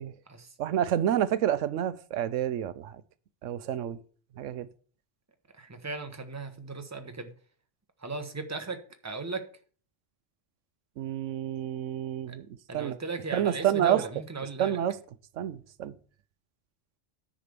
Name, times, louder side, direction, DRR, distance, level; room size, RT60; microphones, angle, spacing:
voice 1, 0.6-3.0 3.4-4.0 4.4-4.7 11.0-12.4 12.7-13.0 13.3-14.1 14.6-15.0 15.4-15.9, right 10 dB, 80° right, 1.0 m, -28 dB
voice 2, 5.6-7.3 8.0-8.8 9.0-9.4 12.3-12.4 12.7-14.8, right 3 dB, 15° right, 1.0 m, -36 dB
9.9 x 5.1 x 6.7 m
omnidirectional pair, 1.3 m